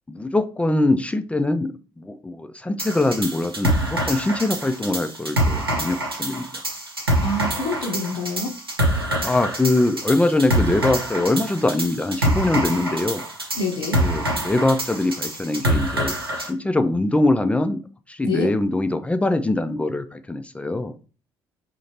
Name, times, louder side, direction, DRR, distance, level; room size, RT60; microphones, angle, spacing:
voice 1, 0.1-6.5 9.2-13.2 14.0-17.8 18.1-21.0, left 2 dB, 10° left, 9 dB, 0.4 m, -23 dB
sound 1, 2.8-16.5, right 1 dB, 85° right, 0.6 m, -25 dB
voice 2, 7.2-8.5 13.5-14.0 18.2-18.5, left 2 dB, 60° left, -1 dB, 0.7 m, -26 dB
4.0 x 2.8 x 2.7 m, 0.36 s
figure-of-eight pair, 50°, 12 cm